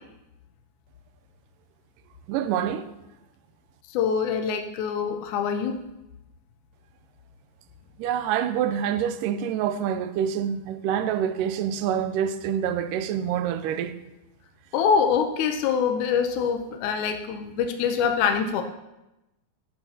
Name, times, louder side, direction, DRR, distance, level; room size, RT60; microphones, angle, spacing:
voice 1, 2.3-2.8 8.0-13.9, right 9 dB, 90° right, 2.3 m, -26 dB
voice 2, 3.9-5.8 14.7-18.6, left 6 dB, 75° left, 2.1 m, -24 dB
16.5 x 8.1 x 2.8 m
omnidirectional pair, 3.7 m